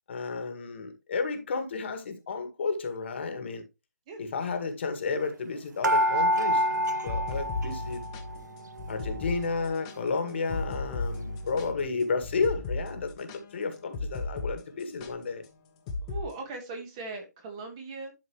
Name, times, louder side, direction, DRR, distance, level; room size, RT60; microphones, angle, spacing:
voice 1, 0.1-3.6 4.2-8.0 8.9-15.4, left 4 dB, 40° left, 1.8 m, -32 dB
sound 1, 5.8-8.4 8.7-9.7 10.2-10.3 10.5-10.6, equal, 80° right, 0.9 m, -28 dB
sound 2, 6.8-14.5 14.8-15.1 15.9-16.2, left 3 dB, 15° left, 1.0 m, -35 dB
voice 2, 16.1-18.1, right 3 dB, 20° right, 1.5 m, -39 dB
11.5 x 4.8 x 3.1 m
hypercardioid pair, 165°, 10 cm